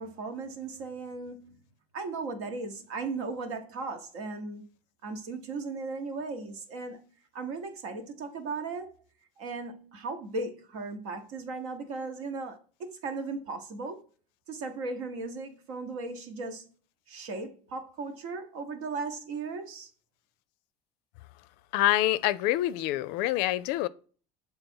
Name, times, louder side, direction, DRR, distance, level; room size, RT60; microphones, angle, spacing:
voice 1, 0.0-1.6 1.9-4.7 5.0-7.0 7.3-8.9 9.4-14.0 14.5-16.7 17.1-19.9, right 3 dB, 85° right, 1.1 m, -37 dB
voice 2, 21.7-23.9, left 15 dB, 75° left, 0.4 m, -26 dB
6.8 x 3.5 x 4.4 m
supercardioid pair, 105°, 16 cm